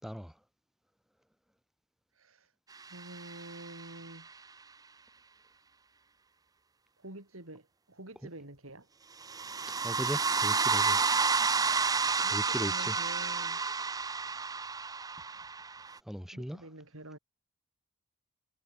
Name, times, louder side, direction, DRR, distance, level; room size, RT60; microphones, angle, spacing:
voice 1, 0.0-0.3 8.2-8.3 9.8-11.0 12.3-13.0 16.1-16.7, equal, ahead, 5.7 m, -38 dB
voice 2, 2.1-2.5 2.9-4.3 7.0-8.9 12.2-13.6 16.3-17.2, right 1 dB, 75° right, 4.2 m, -47 dB
sound 1, 2.9-4.0 9.2-16.0, right 4 dB, 15° right, 0.6 m, -30 dB
head